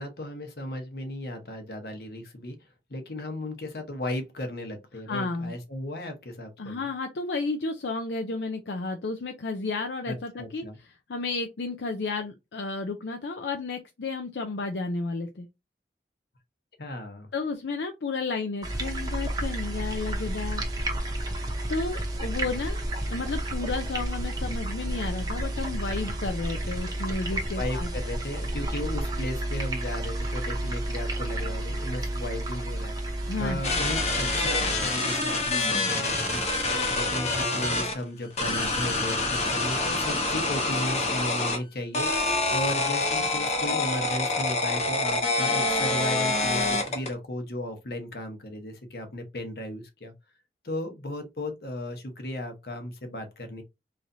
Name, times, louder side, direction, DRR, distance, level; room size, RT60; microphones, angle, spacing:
voice 1, 0.0-2.6 2.9-6.9 10.1-10.8 16.8-17.3 27.5-36.4 36.9-50.1 50.6-53.6, left 1 dB, 60° left, 1.0 m, -35 dB
voice 2, 5.1-5.5 6.6-10.6 11.1-15.5 17.3-20.6 21.7-27.9 33.2-33.8, left 3 dB, 80° left, 0.5 m, -32 dB
sound 1, 18.6-34.8, right 1 dB, 20° right, 0.8 m, -31 dB
sound 2, 33.6-37.9 38.4-41.6 41.9-47.1, left 2 dB, 40° left, 1.0 m, -26 dB
3.9 x 3.2 x 2.7 m
head